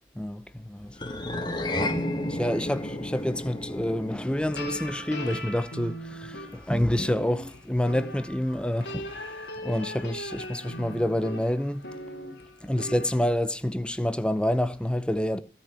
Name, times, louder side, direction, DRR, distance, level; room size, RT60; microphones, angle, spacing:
voice 1, 0.2-1.0 2.2-9.3 9.6-11.8 12.6-15.4, left 1 dB, 5° left, 0.7 m, -28 dB
sound 1, 1.0-5.5, left 1 dB, 25° left, 1.6 m, -32 dB
sound 2, 4.5-13.2, equal, 70° left, 3.2 m, -39 dB
16.5 x 6.2 x 8.3 m
head